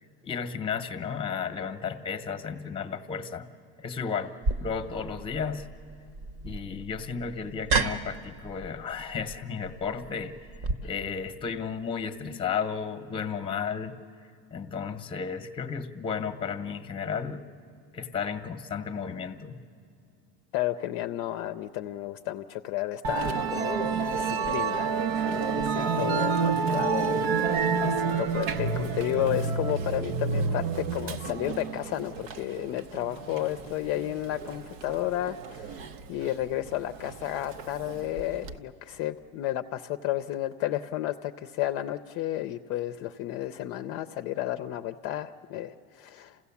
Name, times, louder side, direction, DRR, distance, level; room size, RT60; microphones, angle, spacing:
voice 1, 0.2-3.5 3.8-4.3 4.6-5.7 6.4-10.3 10.8-14.0 14.5-17.4 17.9-19.6, left 6 dB, 15° left, 9 dB, 0.9 m, -33 dB
sound 1, 4.4-10.7, right 3 dB, 45° right, 1.0 m, -33 dB
voice 2, 20.5-24.9 25.2-46.4, left 13 dB, 45° left, 8 dB, 0.5 m, -32 dB
Musical instrument, 23.0-38.5, right 5 dB, 85° right, 1.0 m, -29 dB
28.5 x 16.0 x 7.1 m, 2.5 s
supercardioid pair, 150°, 31 cm